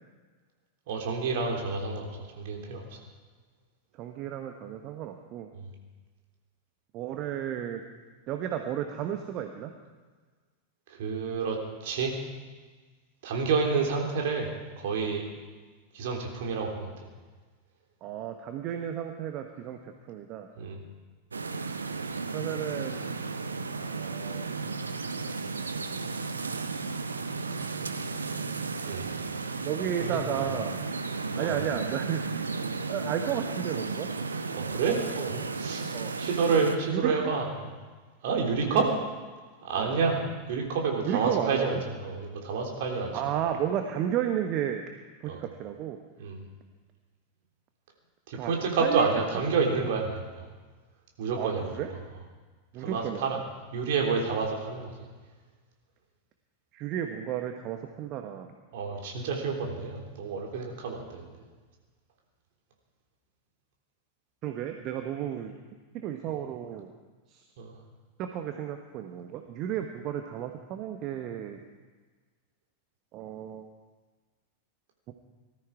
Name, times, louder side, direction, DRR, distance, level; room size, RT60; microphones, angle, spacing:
voice 1, 0.9-3.0 5.5-5.7 10.9-11.6 11.8-12.2 13.2-14.5 14.8-15.3 15.9-16.9 20.6-20.8 28.8-29.1 30.0-30.5 31.3-31.6 34.5-35.9 36.2-37.5 38.2-38.9 39.6-40.2 40.5-43.2 45.3-45.4 46.2-46.4 48.3-50.4 51.2-51.7 52.8-53.4 53.7-54.9 58.7-61.3 67.6-67.7, right 5 dB, 55° right, 1 dB, 3.4 m, -29 dB
voice 2, 4.0-5.5 6.9-7.8 8.3-9.7 18.0-20.5 22.3-23.0 23.7-24.5 29.6-30.8 31.4-32.2 32.9-34.1 35.9-36.1 36.8-37.1 38.7-38.8 39.8-40.0 41.0-41.7 43.1-44.8 45.2-46.0 48.3-48.5 48.8-49.1 51.4-51.9 52.7-53.4 56.7-58.5 64.4-65.5 65.9-66.9 67.3-67.4 68.2-71.6 73.1-73.7 75.1-75.2, right 10 dB, 40° right, 5 dB, 1.1 m, -33 dB
sound 1, 21.3-36.8, right 4 dB, 75° right, 0.9 m, -34 dB
19.5 x 13.5 x 4.9 m, 1.4 s
figure-of-eight pair, 90°, 0 cm